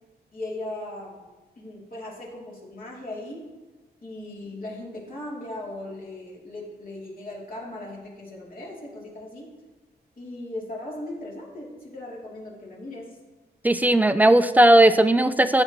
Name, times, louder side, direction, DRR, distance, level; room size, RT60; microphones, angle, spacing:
voice 1, 0.3-1.2 1.6-3.5 4.0-9.5 10.2-13.2, left 1 dB, 50° left, -4 dB, 3.0 m, -38 dB
voice 2, 13.6-15.6, right 1 dB, 10° right, 12 dB, 0.4 m, -17 dB
15.0 x 7.5 x 3.1 m, 1.2 s
wide cardioid pair, 140°, 18 cm